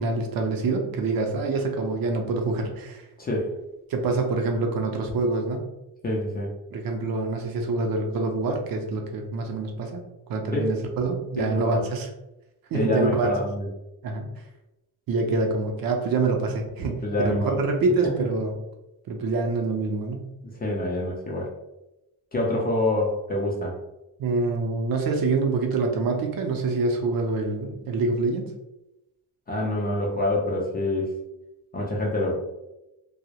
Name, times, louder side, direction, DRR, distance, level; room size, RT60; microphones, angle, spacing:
voice 1, 0.0-3.0 3.9-5.6 6.7-12.1 12.7-13.3 14.0-14.3 15.1-18.5 19.1-20.3 24.2-28.5, right 3 dB, 55° right, 3 dB, 0.5 m, -26 dB
voice 2, 3.2-3.5 6.0-6.5 10.5-10.7 11.4-11.9 12.7-13.7 16.8-17.6 18.2-18.3 20.6-21.5 22.3-23.7 29.5-31.1 31.7-32.4, left 1 dB, 25° left, -2 dB, 0.4 m, -26 dB
2.2 x 2.0 x 2.7 m, 0.93 s
cardioid pair, 130°, 41 cm